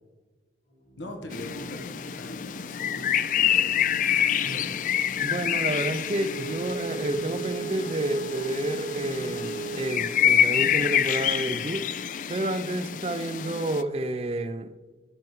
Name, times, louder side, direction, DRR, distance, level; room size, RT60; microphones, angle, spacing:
Organ, 0.7-11.4, right 2 dB, 70° left, 2.8 m, -50 dB
voice 1, 1.0-3.1 3.4-3.8 4.4-4.8, left 1 dB, 85° left, 1.3 m, -41 dB
sound 1, 1.3-13.8, left 9 dB, 45° left, 0.3 m, -27 dB
voice 2, 5.2-11.8 12.3-14.7, right 1 dB, 35° right, 0.5 m, -30 dB
Wind instrument woodwind instrument, 6.3-10.5, right 6 dB, 70° right, 0.8 m, -36 dB
15.0 x 5.9 x 3.2 m
head